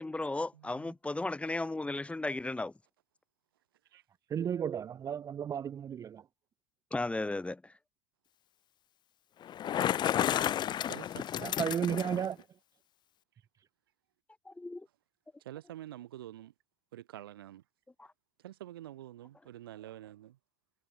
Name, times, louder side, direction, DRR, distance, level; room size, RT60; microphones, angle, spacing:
voice 1, 0.0-2.7 6.9-7.7 14.5-14.9 18.0-18.1, left 2 dB, 10° left, 1.7 m, -35 dB
voice 2, 0.5-0.9 3.9-4.0 10.8-11.3 15.4-16.5 16.9-17.6 18.4-20.4, right 13 dB, 75° right, 2.5 m, -47 dB
voice 3, 4.3-6.2 11.4-12.4, right 8 dB, 25° right, 0.5 m, -33 dB
Bicycle, 9.4-12.3, left 10 dB, 40° left, 1.3 m, -31 dB
figure-of-eight pair, 75°, 12 cm